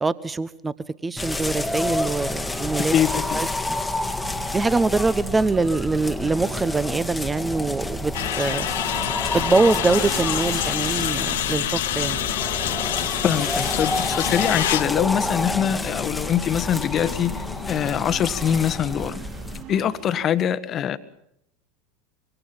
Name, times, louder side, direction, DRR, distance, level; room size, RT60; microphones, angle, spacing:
voice 1, 0.0-0.7 1.0-2.9 3.3-3.8 4.5-8.7 9.3-12.2, right 3 dB, 15° right, 16 dB, 1.1 m, -23 dB
sound 1, 1.2-19.6, left 2 dB, 5° left, 1.7 m, -29 dB
voice 2, 2.8-3.5 13.2-19.2 19.7-21.0, left 9 dB, 35° left, 13 dB, 1.4 m, -23 dB
sound 2, 4.2-20.2, right 7 dB, 55° right, 6.1 m, -42 dB
sound 3, 8.1-18.0, left 12 dB, 65° left, 1.0 m, -28 dB
25.0 x 23.5 x 5.7 m, 0.77 s
figure-of-eight pair, 80°, 0 cm